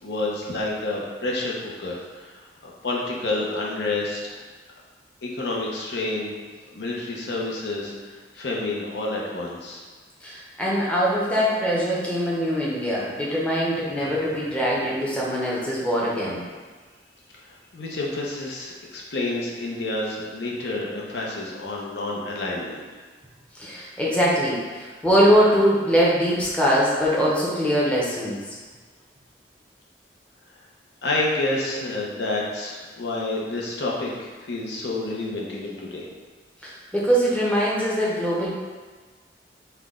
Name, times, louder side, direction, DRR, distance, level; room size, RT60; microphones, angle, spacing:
voice 1, 0.0-4.4 5.2-6.4 6.7-9.8 17.4-22.8 31.0-36.1, left 2 dB, 70° left, -3 dB, 0.8 m, -29 dB
voice 2, 10.2-16.4 23.5-28.4 36.6-38.5, equal, 5° left, -6 dB, 0.7 m, -22 dB
5.8 x 2.2 x 3.6 m, 1.4 s
head